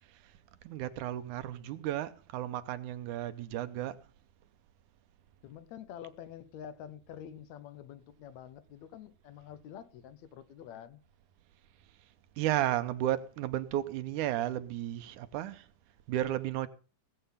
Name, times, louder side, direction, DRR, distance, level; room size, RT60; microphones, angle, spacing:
voice 1, 0.6-4.0 12.4-15.7 16.1-16.7, right 13 dB, 90° right, 2.3 m, -33 dB
voice 2, 5.4-11.0, left 9 dB, 70° left, 2.0 m, -47 dB
18.0 x 7.9 x 5.6 m
omnidirectional pair, 3.5 m